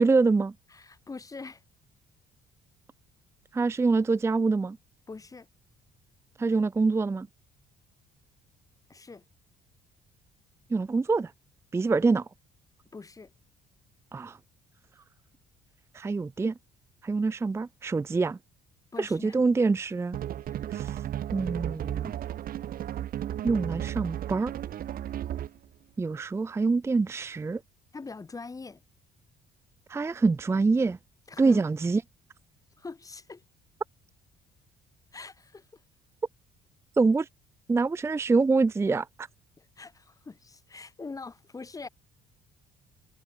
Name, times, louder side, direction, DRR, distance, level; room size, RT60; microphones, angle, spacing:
voice 1, 0.0-0.5 3.5-4.8 6.4-7.3 10.7-11.3 11.7-12.3 14.1-14.4 15.9-16.5 17.0-18.4 19.0-20.2 20.7-21.0 21.3-22.1 23.4-24.5 26.0-27.6 29.9-31.0 31.4-32.0 37.0-37.3 37.7-39.3, right 4 dB, 15° right, 0.5 m, -25 dB
voice 2, 0.7-1.6 5.1-5.5 8.9-9.2 12.9-13.3 18.9-19.4 20.5-20.6 27.9-28.8 31.3-31.7 32.8-33.4 35.1-35.6 39.6-41.9, left 4 dB, 20° left, 1.6 m, -43 dB
sound 1, 20.1-25.7, right 11 dB, 60° right, 2.3 m, -34 dB
cardioid pair, 110°, 17 cm